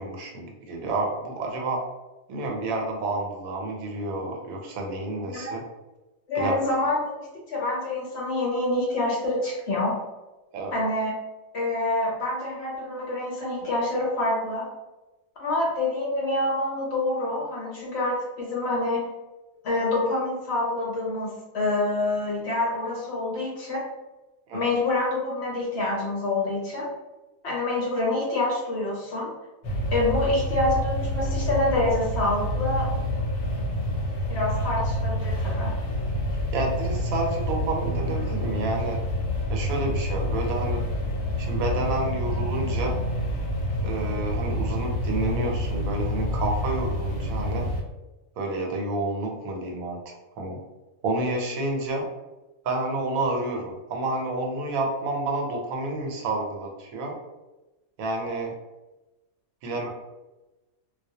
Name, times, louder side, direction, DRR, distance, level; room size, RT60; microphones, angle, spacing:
voice 1, 0.0-1.8 2.3-5.6 6.3-6.6 10.5-10.8 24.5-24.6 36.5-39.0 39.5-40.8 41.4-43.0 43.8-47.7 48.4-50.6 51.0-52.1 52.6-57.2 58.0-58.5 59.6-59.9, right 2 dB, 80° right, 1 dB, 1.0 m, -29 dB
voice 2, 5.2-5.5 6.3-10.0 10.7-11.1 11.5-14.7 15.4-19.1 19.6-23.8 24.5-26.9 27.4-29.3 29.9-33.0 34.3-35.7, left 2 dB, 65° left, -4 dB, 0.7 m, -26 dB
sound 1, 29.6-47.8, equal, 90° left, 1.1 m, -28 dB
2.3 x 2.1 x 2.7 m, 1.1 s
omnidirectional pair, 1.5 m